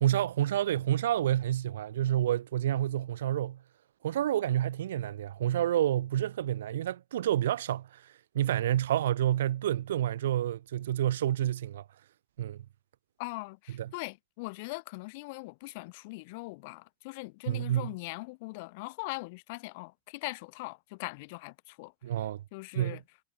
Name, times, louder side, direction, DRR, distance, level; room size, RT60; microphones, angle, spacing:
voice 1, 0.0-3.6 4.0-8.0 8.3-11.8 12.4-12.6 13.7-13.9 17.5-17.9 22.0-22.4 22.7-23.0, right 12 dB, 60° right, 1.0 m, -29 dB
voice 2, 13.2-21.9 22.5-23.0, left 26 dB, 50° left, 2.0 m, -41 dB
figure-of-eight pair, 90°, 0 cm